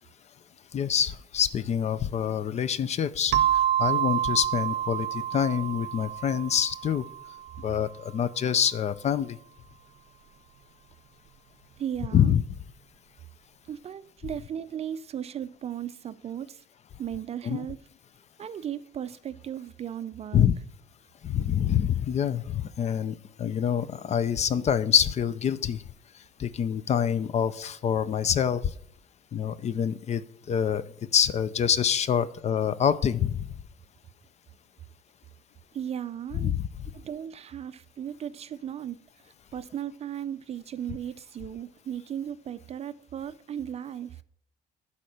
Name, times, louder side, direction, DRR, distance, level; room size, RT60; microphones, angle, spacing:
voice 1, 0.7-3.5 3.8-7.0 7.6-9.4 12.1-12.4 17.4-17.7 20.3-20.5 21.2-25.8 26.4-28.6 29.3-30.2 30.5-30.8 31.1-33.5 36.4-36.7, left 8 dB, 40° left, 0.5 m, -26 dB
sound 1, 3.3-7.7, right 11 dB, 75° right, 0.7 m, -28 dB
voice 2, 11.8-12.3 13.7-16.6 17.0-17.8 18.4-20.5 35.7-36.5 36.9-39.0 39.2-44.2, right 9 dB, 40° right, 0.4 m, -36 dB
11.0 x 4.3 x 6.4 m
cardioid pair, 110°, 17 cm